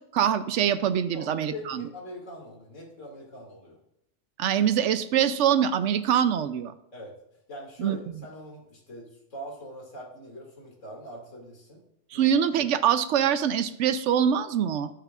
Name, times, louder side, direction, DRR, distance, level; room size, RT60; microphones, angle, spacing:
voice 1, 0.1-1.8 4.4-6.7 7.8-8.0 12.1-14.9, right 9 dB, 75° right, 12 dB, 0.9 m, -24 dB
voice 2, 1.1-3.8 6.9-7.2 7.5-11.9 12.1-12.3, equal, 85° left, -2 dB, 2.7 m, -42 dB
14.5 x 8.2 x 2.4 m, 0.79 s
omnidirectional pair, 1.3 m